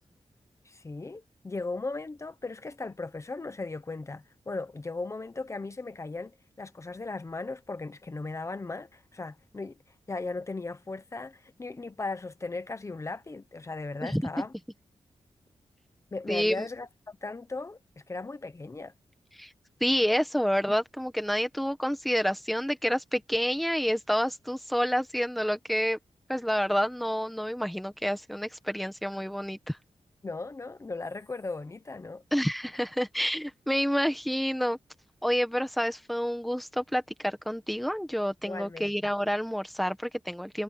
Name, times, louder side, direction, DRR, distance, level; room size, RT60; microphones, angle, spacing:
voice 1, 0.6-9.8 10.1-14.5 16.1-17.8 18.1-18.9 30.2-32.2 38.4-38.9, left 3 dB, 25° left, 1.1 m, -37 dB
voice 2, 16.3-16.7 19.4-19.5 19.8-26.0 26.3-29.8 32.3-34.8 35.2-40.6, equal, ahead, 1.6 m, -28 dB
wide cardioid pair, 180°, 11 cm